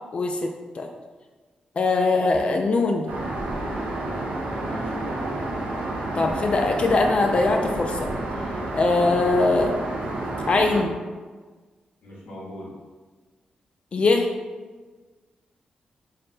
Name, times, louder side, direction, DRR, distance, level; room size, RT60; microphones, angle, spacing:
voice 1, 0.1-0.9 1.8-3.1 6.1-8.1 8.7-9.8 10.5-11.0 13.9-14.3, left 3 dB, 45° left, 3 dB, 0.3 m, -21 dB
Aircraft, 3.1-10.8, right 2 dB, 85° right, 0.7 m, -30 dB
voice 2, 4.5-5.4 12.0-12.7, equal, 85° left, -6 dB, 1.2 m, -38 dB
3.2 x 2.2 x 4.2 m, 1.4 s
cardioid pair, 85°, 3 cm